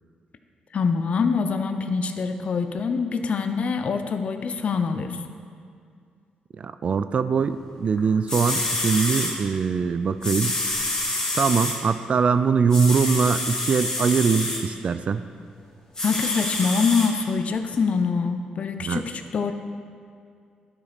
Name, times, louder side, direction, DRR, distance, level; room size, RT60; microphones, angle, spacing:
voice 1, 0.7-5.2 16.0-19.5, left 5 dB, 50° left, 8 dB, 0.6 m, -24 dB
voice 2, 6.6-10.6 11.3-15.2 18.8-19.0, right 5 dB, 50° right, 12 dB, 0.3 m, -22 dB
sound 1, 8.0-8.1 8.3-9.3 10.2-11.8 12.7-14.6 15.9-17.1 17.7-17.8, left 2 dB, 25° left, 2.2 m, -27 dB
12.0 x 5.2 x 4.1 m, 2.2 s
cardioid pair, 85°, 3 cm